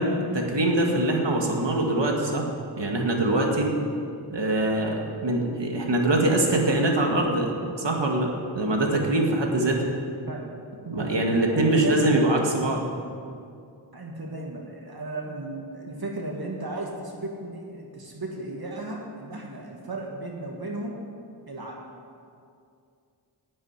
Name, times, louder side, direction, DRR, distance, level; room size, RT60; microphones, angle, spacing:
voice 1, 0.3-2.5 2.8-3.7 4.3-7.5 7.8-9.8 10.9-12.9, right 1 dB, 75° right, 1 dB, 1.9 m, -23 dB
voice 2, 11.0-12.1 13.9-21.0 21.5-21.8, right 2 dB, 55° right, -1 dB, 1.7 m, -35 dB
10.5 x 7.6 x 9.6 m, 2.4 s
wide cardioid pair, 80°, 44 cm